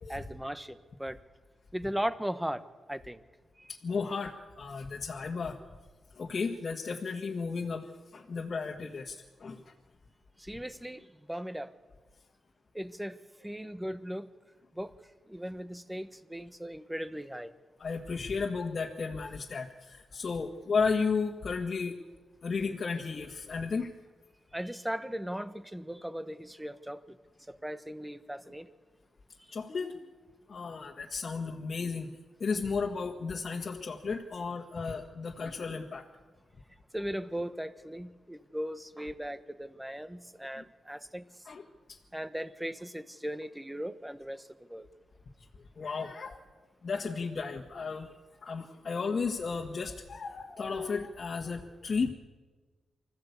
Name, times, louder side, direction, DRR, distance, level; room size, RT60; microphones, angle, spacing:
voice 1, 0.1-1.2 1.7-2.6 2.9-3.2 3.6-3.7 10.4-11.7 12.7-14.3 14.7-15.0 15.3-17.5 24.5-27.2 27.5-28.7 36.9-41.3 42.1-44.9, equal, 5° right, 12 dB, 1.2 m, -38 dB
voice 2, 3.7-5.6 6.1-7.9 8.1-9.7 17.8-22.0 22.4-23.9 29.5-29.9 30.5-32.1 32.4-36.1 40.6-40.7 41.4-41.6 41.9-42.0 45.8-46.4 46.8-48.1 48.4-52.1, left 5 dB, 50° left, 0 dB, 1.7 m, -34 dB
25.0 x 15.0 x 8.3 m, 1.3 s
cardioid pair, 85°, 0 cm